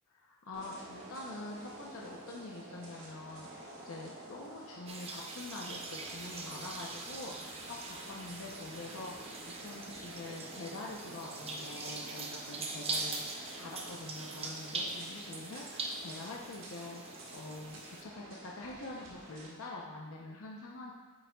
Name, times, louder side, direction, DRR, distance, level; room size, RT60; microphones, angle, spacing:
voice 1, 0.1-20.9, left 2 dB, 80° left, -2 dB, 0.7 m, -45 dB
sound 1, 0.5-19.5, right 1 dB, 65° right, 1.5 m, -50 dB
sound 2, 4.9-18.0, right 3 dB, 30° right, 0.7 m, -42 dB
8.9 x 6.3 x 2.3 m, 1.3 s
head